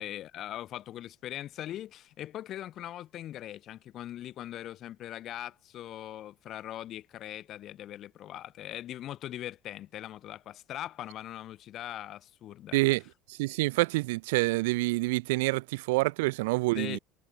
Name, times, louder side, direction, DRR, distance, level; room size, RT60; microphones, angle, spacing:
voice 1, 0.0-12.8 16.7-17.0, left 12 dB, 40° left, 1.2 m, -41 dB
voice 2, 13.3-17.0, right 23 dB, 90° right, 0.3 m, -27 dB
cardioid pair, 145°, 0 cm